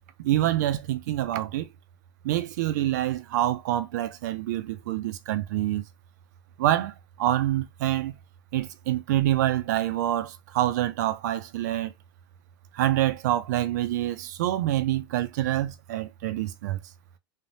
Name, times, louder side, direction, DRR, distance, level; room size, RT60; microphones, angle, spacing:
voice 1, 0.2-1.7 2.2-5.8 6.6-8.2 8.5-11.9 12.7-16.8, right 13 dB, 50° right, 0.4 m, -26 dB
3.2 x 2.1 x 2.6 m
supercardioid pair, 175°, 12 cm